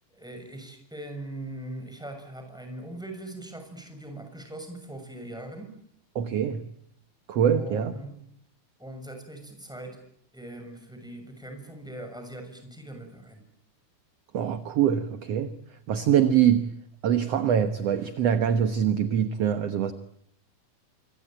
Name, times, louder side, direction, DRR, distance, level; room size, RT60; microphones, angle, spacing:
voice 1, 0.1-5.7 7.5-8.2 8.8-10.0 10.3-13.4, right 1 dB, ahead, 5 dB, 6.4 m, -41 dB
voice 2, 6.2-6.6 7.3-7.9 14.3-15.5 15.9-16.7 17.0-19.9, right 9 dB, 60° right, 10 dB, 2.1 m, -24 dB
26.5 x 24.0 x 9.0 m, 0.70 s
omnidirectional pair, 3.6 m